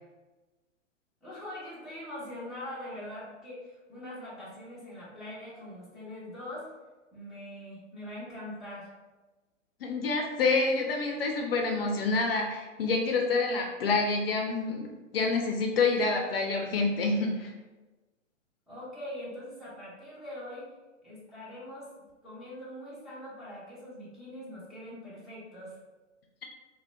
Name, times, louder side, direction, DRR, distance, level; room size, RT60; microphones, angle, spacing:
voice 1, 1.2-6.7 7.1-8.9 18.7-20.7 21.0-21.9 22.2-25.8, left 1 dB, ahead, -11 dB, 0.5 m, -42 dB
voice 2, 9.8-17.5, left 3 dB, 50° left, 2 dB, 0.5 m, -27 dB
3.6 x 2.2 x 2.2 m, 1.2 s
figure-of-eight pair, 115°, 38 cm